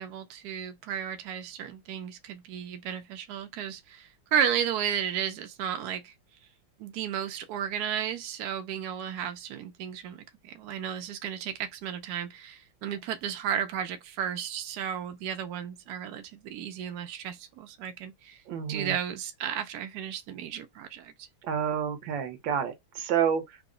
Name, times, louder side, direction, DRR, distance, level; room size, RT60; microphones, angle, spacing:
voice 1, 0.0-6.1 6.8-18.4 18.7-21.1, right 9 dB, 90° right, 0.8 m, -33 dB
voice 2, 18.5-19.0 21.4-23.6, right 8 dB, 65° right, 1.5 m, -29 dB
3.8 x 2.0 x 3.7 m
omnidirectional pair, 2.4 m